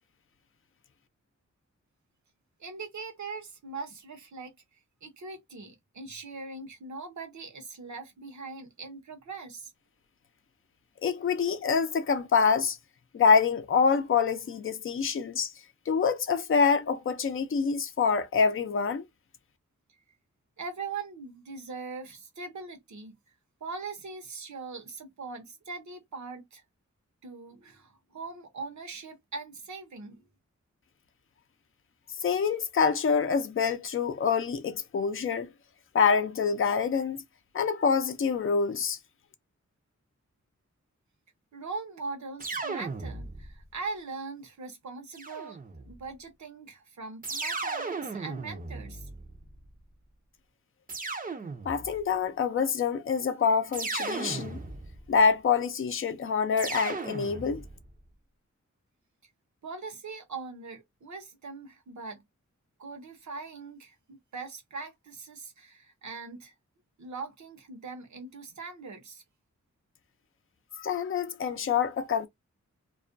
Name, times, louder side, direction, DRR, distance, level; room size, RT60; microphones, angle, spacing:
voice 1, 2.6-4.6 5.0-9.7 20.6-23.1 23.6-26.6 27.2-30.2 41.5-49.1 59.6-62.2 62.8-66.5 67.0-69.2, right 4 dB, 70° right, 0.8 m, -41 dB
voice 2, 11.0-12.8 13.1-15.5 15.9-19.0 32.2-35.5 35.9-37.2 37.5-39.0 51.7-54.6 55.1-57.6 70.8-72.3, left 6 dB, 45° left, 0.5 m, -26 dB
sound 1, 42.4-43.6 45.1-46.0 47.2-49.6 50.9-52.0 53.7-55.1 56.6-57.8, right 3 dB, 30° right, 0.5 m, -36 dB
2.3 x 2.1 x 2.5 m
wide cardioid pair, 95°, 30 cm